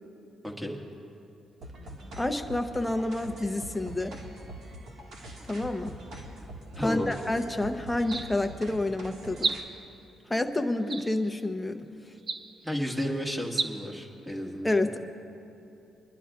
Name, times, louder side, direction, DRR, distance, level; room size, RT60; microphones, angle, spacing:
voice 1, 0.4-0.8 6.8-7.1 12.6-14.8, equal, 10° right, 1 dB, 1.7 m, -32 dB
sound 1, 1.6-9.6, equal, 70° right, 1.7 m, -44 dB
voice 2, 2.2-4.2 5.5-5.9 6.8-9.5 10.3-11.9 14.6-15.0, left 2 dB, 10° left, 6 dB, 0.8 m, -29 dB
sound 2, 7.1-7.3 8.0-8.6 9.3-10.0 10.9-11.4 12.2-12.7 13.4-13.7, right 4 dB, 40° right, 0.6 m, -33 dB
26.0 x 11.5 x 2.4 m, 2.8 s
cardioid pair, 90°, 0 cm